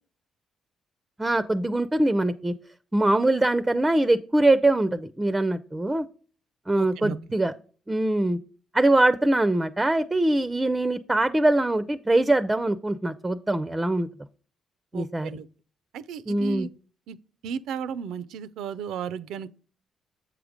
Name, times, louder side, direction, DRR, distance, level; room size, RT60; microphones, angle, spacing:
voice 1, 1.2-2.5 2.9-6.1 6.7-7.5 7.9-8.4 8.7-14.1 14.9-15.3 16.3-16.7, right 2 dB, 15° right, 0.4 m, -23 dB
voice 2, 6.8-7.2 14.9-15.5 15.9-16.7 17.1-17.2 17.4-19.5, right 7 dB, 85° right, 0.5 m, -34 dB
7.7 x 4.9 x 5.1 m
cardioid pair, 90°, 0 cm